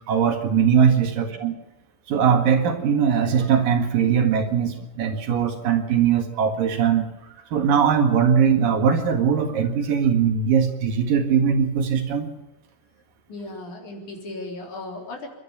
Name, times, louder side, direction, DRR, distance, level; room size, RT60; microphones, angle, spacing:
voice 1, 0.1-1.6 2.1-7.1 7.5-12.3, right 7 dB, 75° right, 5 dB, 3.6 m, -20 dB
voice 2, 13.3-15.3, left 2 dB, 60° left, 1 dB, 5.2 m, -36 dB
29.0 x 12.5 x 7.1 m, 0.99 s
omnidirectional pair, 3.9 m